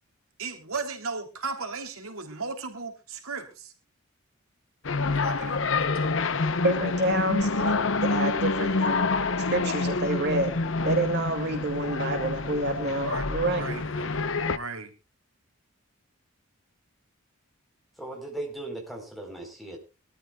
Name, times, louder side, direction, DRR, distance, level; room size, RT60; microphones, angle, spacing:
voice 1, 0.4-3.7 5.2-6.3 13.0-14.9, right 4 dB, 75° right, 5 dB, 3.4 m, -36 dB
sound 1, 4.8-14.6, left 3 dB, 60° left, 0.9 m, -27 dB
voice 2, 6.6-9.1 9.5-10.6 10.8-13.7, right 2 dB, 50° right, 4 dB, 2.5 m, -28 dB
voice 3, 18.0-19.8, right 2 dB, ahead, 2 dB, 4.2 m, -37 dB
23.5 x 13.5 x 2.4 m, 0.30 s
head